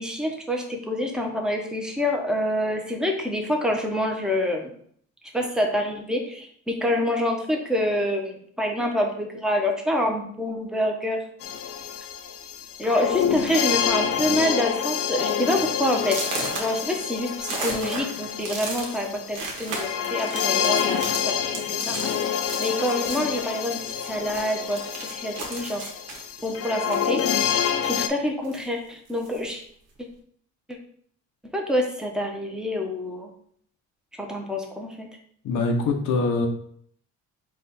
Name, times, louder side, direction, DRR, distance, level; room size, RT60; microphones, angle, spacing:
voice 1, 0.0-4.7 5.3-11.2 12.8-16.2 16.6-25.8 26.4-27.6 27.9-29.6 31.5-33.3 34.2-35.1, left 1 dB, ahead, 1 dB, 0.8 m, -27 dB
creepy backround noize, 11.4-28.1, left 8 dB, 50° left, 0.5 m, -27 dB
sound 1, 11.5-11.8 12.6-12.7 13.1-13.4 13.7-14.1 14.6-14.7 15.1-15.2 16.0-24.1 24.3-28.1 28.4-29.5, right 3 dB, 85° right, 1.1 m, -36 dB
voice 2, 35.4-36.5, left 3 dB, 75° left, 2 dB, 0.8 m, -23 dB
4.2 x 2.5 x 4.1 m, 0.63 s
cardioid pair, 90°, 30 cm